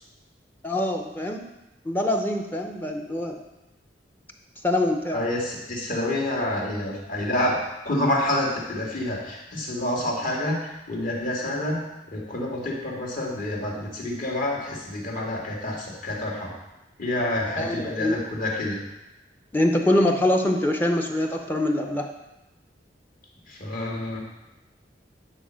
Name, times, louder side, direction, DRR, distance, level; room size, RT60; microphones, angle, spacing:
voice 1, 0.6-1.4 1.8-3.4 4.6-5.3 17.6-18.2 19.5-22.1, left 1 dB, 10° left, 3 dB, 0.7 m, -24 dB
voice 2, 5.1-11.8 12.1-16.5 17.0-18.8 23.5-24.2, left 1 dB, 50° left, -2 dB, 2.0 m, -28 dB
9.7 x 4.3 x 6.3 m, 0.98 s
head